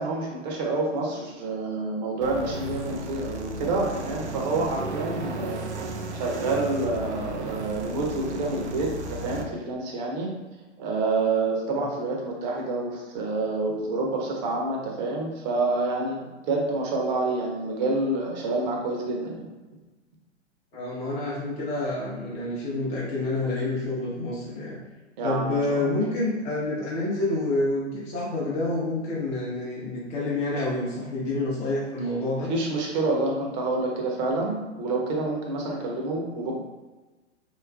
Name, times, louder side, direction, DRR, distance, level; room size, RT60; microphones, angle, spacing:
voice 1, 0.0-5.6 6.1-10.3 10.8-19.4 25.2-25.8 32.5-36.6, right 2 dB, 40° right, -1 dB, 0.8 m, -28 dB
sound 1, 2.2-9.4, right 2 dB, 70° right, 0.5 m, -34 dB
voice 2, 20.7-24.8 25.2-32.5, left 2 dB, 20° left, -7 dB, 0.7 m, -28 dB
3.2 x 3.1 x 2.2 m, 1.2 s
figure-of-eight pair, 105°, 36 cm